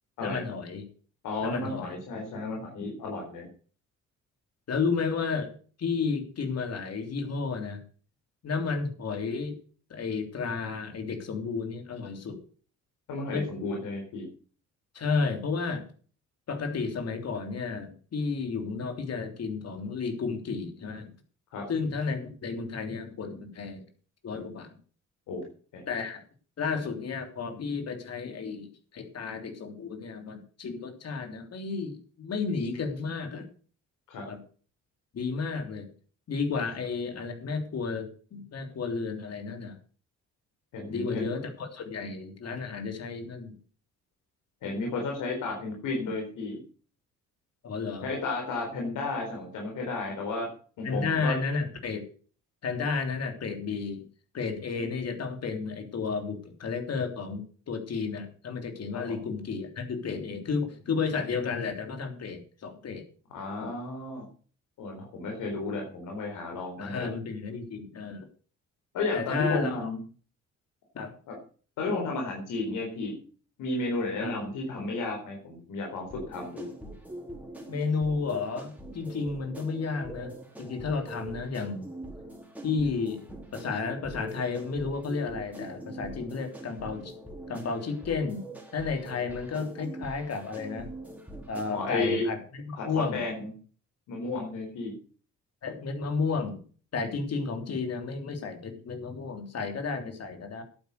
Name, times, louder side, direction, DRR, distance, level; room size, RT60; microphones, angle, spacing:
voice 1, 0.2-0.9 1.4-2.0 4.7-5.5 5.8-7.8 8.4-9.6 9.9-12.4 13.3-13.4 14.9-15.9 16.5-21.1 21.7-23.8 24.2-24.8 25.9-26.2 26.6-33.4 34.3-34.4 35.1-35.9 36.3-39.8 40.9-43.5 47.6-48.1 50.8-52.0 52.6-54.0 54.3-63.0 66.8-68.2 69.1-69.9 70.9-71.1 74.2-74.4 77.7-80.3 80.6-81.9 82.6-83.2 83.5-87.1 87.5-88.4 88.7-90.9 91.5-93.2 95.6-96.6 96.9-100.6, left 4 dB, 55° left, 6 dB, 3.4 m, -32 dB
voice 2, 1.2-3.4 13.1-14.2 21.5-21.6 25.3-25.4 25.7-25.8 34.1-34.2 40.7-41.4 44.6-46.6 48.0-50.5 50.8-51.4 54.7-54.8 58.9-59.0 63.3-64.3 64.8-67.1 68.9-70.0 71.3-71.4 71.8-73.1 73.6-76.7 91.7-92.2 92.8-93.5 94.1-94.9, left 3 dB, 85° left, 0 dB, 4.2 m, -33 dB
sound 1, 76.0-92.0, right 1 dB, 5° right, 3.9 m, -43 dB
11.5 x 9.0 x 6.6 m, 0.41 s
cardioid pair, 90°, 30 cm